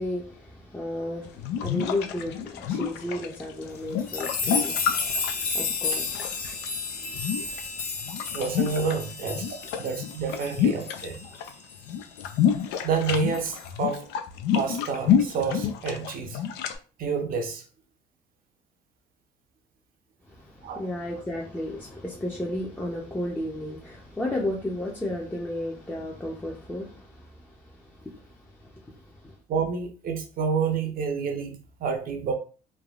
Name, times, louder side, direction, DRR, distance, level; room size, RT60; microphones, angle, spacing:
voice 1, 0.0-7.3 20.3-29.4, left 1 dB, 10° left, 0.5 m, -34 dB
sound 1, 1.3-6.7 7.1-9.0 9.2-11.5 11.8-16.8, left 8 dB, 80° left, 0.4 m, -28 dB
sound 2, 4.0-11.8 12.2-12.3 13.2-13.7, left 4 dB, 55° left, 0.8 m, -32 dB
voice 2, 8.3-11.2 12.8-14.1 14.5-16.4 17.0-17.6 20.6-20.8 29.5-32.3, right 5 dB, 60° right, 0.7 m, -29 dB
3.3 x 2.2 x 2.4 m
cardioid pair, 110°, 17 cm